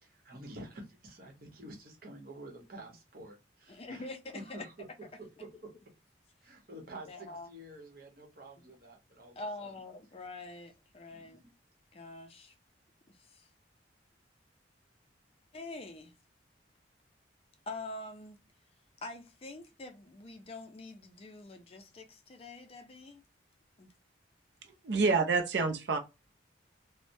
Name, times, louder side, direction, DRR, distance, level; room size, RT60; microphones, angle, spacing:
voice 1, 0.0-4.1 4.3-5.7 6.4-9.8 11.1-11.5, right 1 dB, 50° right, 1.0 m, -49 dB
voice 2, 3.7-4.7 7.1-7.5 9.4-11.4 11.9-12.5 13.1-13.5 15.5-16.1 17.7-18.4 19.0-23.2 23.8-23.9, left 2 dB, 30° left, 0.4 m, -45 dB
voice 3, 24.8-26.0, right 4 dB, 65° right, 0.4 m, -27 dB
3.2 x 2.1 x 2.6 m
head